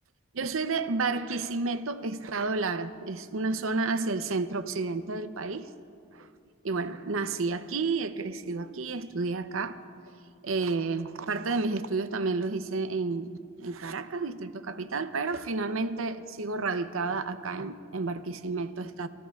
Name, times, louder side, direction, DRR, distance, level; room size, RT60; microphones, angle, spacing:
voice 1, 0.3-5.7 6.1-6.3 6.6-9.8 10.4-19.1, right 3 dB, 70° right, 0.7 m, -31 dB
27.0 x 15.5 x 2.4 m
head